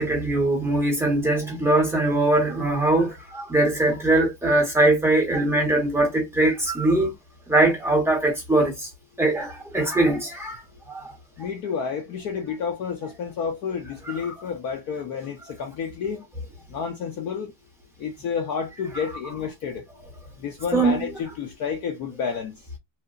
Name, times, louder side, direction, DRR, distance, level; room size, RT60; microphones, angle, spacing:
voice 1, 0.0-7.1 7.5-8.9 9.2-10.6 10.9-11.1 20.7-21.1, right 2 dB, 5° right, 0.6 m, -21 dB
voice 2, 11.4-16.3 16.7-17.5 18.0-19.8 20.4-22.6, left 6 dB, 40° left, 0.4 m, -30 dB
2.8 x 2.0 x 2.3 m
cardioid pair, 160°, 49 cm